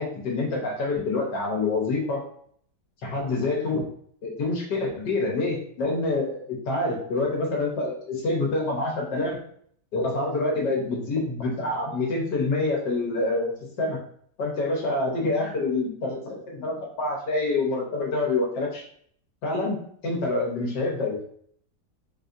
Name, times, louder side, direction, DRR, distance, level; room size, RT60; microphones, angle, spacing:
voice 1, 0.0-2.3 3.0-3.8 4.2-9.4 9.9-14.0 14.4-18.8 19.4-19.8 20.0-21.2, left 2 dB, 70° left, -1 dB, 1.5 m, -26 dB
4.0 x 2.7 x 2.5 m, 0.62 s
omnidirectional pair, 1.9 m